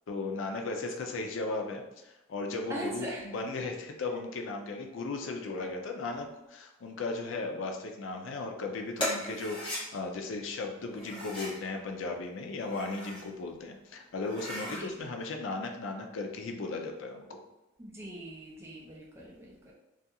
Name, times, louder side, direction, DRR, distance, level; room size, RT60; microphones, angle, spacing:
voice 1, 0.1-17.4, left 3 dB, 85° left, 3 dB, 0.4 m, -36 dB
voice 2, 2.7-3.3 5.5-5.7 14.6-14.9 17.8-19.7, right 1 dB, 15° right, -3 dB, 0.4 m, -41 dB
sound 1, 9.0-9.8 10.9-11.6 12.5-13.3 13.7-13.8 14.2-14.8, left 1 dB, 25° left, 0.8 m, -37 dB
2.4 x 2.3 x 2.7 m, 0.95 s
head